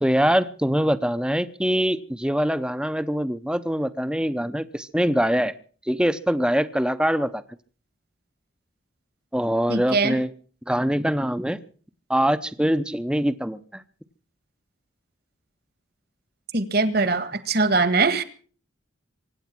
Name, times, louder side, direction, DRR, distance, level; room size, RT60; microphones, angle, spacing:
voice 1, 0.0-5.5 5.9-7.4 9.3-10.3 10.7-11.6 12.1-13.8, equal, 5° right, 13 dB, 0.7 m, -23 dB
voice 2, 9.7-10.2 16.5-18.2, right 3 dB, 50° right, 13 dB, 1.6 m, -22 dB
24.5 x 9.6 x 6.0 m, 0.43 s
head